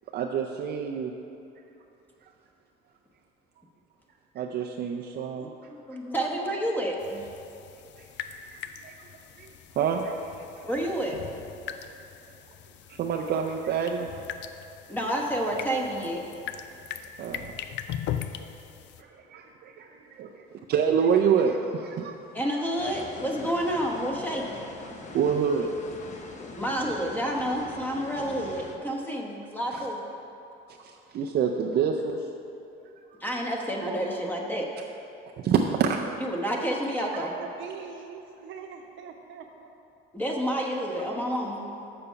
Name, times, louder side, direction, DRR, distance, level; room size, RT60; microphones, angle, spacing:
voice 1, 0.1-1.1 4.4-5.5 8.8-8.9 9.4-9.5 9.8-10.3 12.9-14.1 17.2-17.5 19.0-20.3 20.7-22.2 25.1-25.7 29.7-29.8 30.8-32.2 35.4-36.0, right 7 dB, 50° right, 1 dB, 0.5 m, -27 dB
voice 2, 5.4-7.3 10.6-11.2 14.9-16.4 22.3-24.6 26.5-30.0 33.2-34.6 36.2-37.3 40.1-41.7, equal, 10° left, -1 dB, 1.1 m, -29 dB
sound 1, 7.0-19.0, left 9 dB, 60° left, 0.4 m, -40 dB
sound 2, 22.8-28.8, left 3 dB, 35° left, 0.9 m, -42 dB
voice 3, 37.0-39.7, right 6 dB, 70° right, 3 dB, 0.9 m, -42 dB
6.9 x 6.9 x 5.6 m, 2.8 s
cardioid pair, 120°, 21 cm